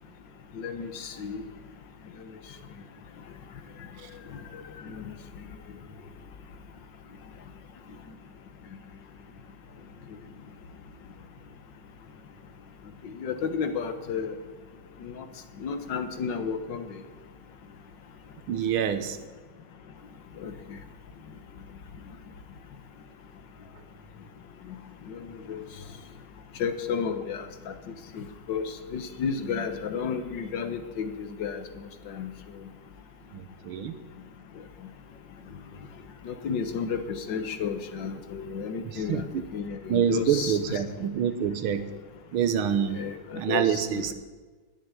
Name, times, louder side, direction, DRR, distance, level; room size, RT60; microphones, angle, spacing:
voice 1, 0.6-1.4 4.5-4.6 5.0-5.1 13.2-14.4 15.0-15.2 15.6-16.9 20.4-20.5 25.1-25.2 25.5-25.6 26.6-27.7 28.1-31.6 32.1-32.3 36.3-39.2 39.5-40.8 43.0-43.8, left 6 dB, 65° left, 8 dB, 1.7 m, -32 dB
voice 2, 18.5-19.2 33.3-34.0 38.9-39.4 39.9-41.9 42.3-43.0 43.3-44.1, right 8 dB, 90° right, 10 dB, 1.9 m, -26 dB
10.5 x 9.9 x 9.7 m, 1.3 s
omnidirectional pair, 2.2 m